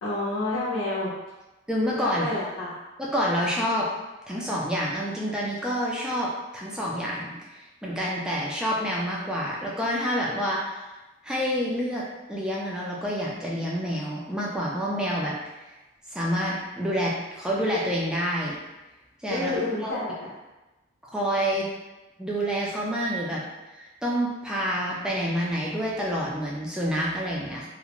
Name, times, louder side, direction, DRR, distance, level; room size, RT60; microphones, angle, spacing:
voice 1, 0.0-1.1 2.0-2.8 19.3-20.3, left 2 dB, 65° left, -9 dB, 0.6 m, -29 dB
voice 2, 1.7-2.3 3.0-3.9 4.3-7.3 7.8-10.8 11.2-15.4 16.1-18.6 19.2-19.5 19.8-20.0 21.1-21.7 22.2-23.4 23.7-27.7, equal, 5° right, -5 dB, 0.4 m, -28 dB
2.4 x 2.1 x 2.9 m, 1.1 s
head